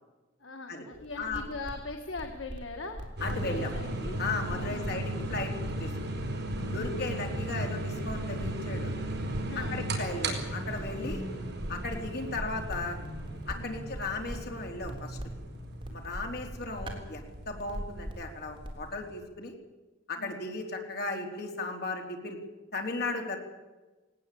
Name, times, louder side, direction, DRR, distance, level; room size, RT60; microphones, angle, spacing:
voice 1, 0.4-4.2 4.5-5.1 6.6-7.1 9.5-9.8 13.5-13.8 20.2-20.5, left 3 dB, 80° left, 4 dB, 1.8 m, -41 dB
sound 1, 0.9-18.8, equal, 25° right, 3.7 m, -43 dB
voice 2, 3.2-3.7 4.2-5.9 6.7-8.9 9.6-11.2 11.7-13.0 13.5-15.2 15.9-19.5 20.1-22.4 22.7-23.4, left 3 dB, 55° left, 3 dB, 3.8 m, -36 dB
sound 2, 3.2-19.1, right 1 dB, 60° right, 4.6 m, -36 dB
19.0 x 18.5 x 8.5 m, 1.2 s
head